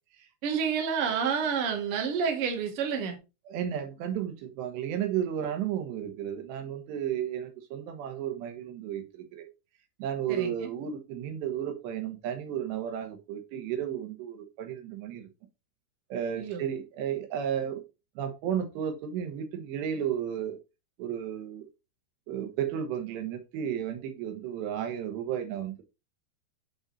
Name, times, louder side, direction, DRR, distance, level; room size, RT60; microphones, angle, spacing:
voice 1, 0.4-3.2 10.3-10.5 16.4-16.6, right 6 dB, 55° right, 1.7 m, -29 dB
voice 2, 3.5-9.5 10.0-15.3 16.1-17.8 18.2-20.6 21.0-21.7 22.3-25.8, right 9 dB, 85° right, 3.4 m, -33 dB
8.7 x 4.0 x 4.0 m
omnidirectional pair, 4.9 m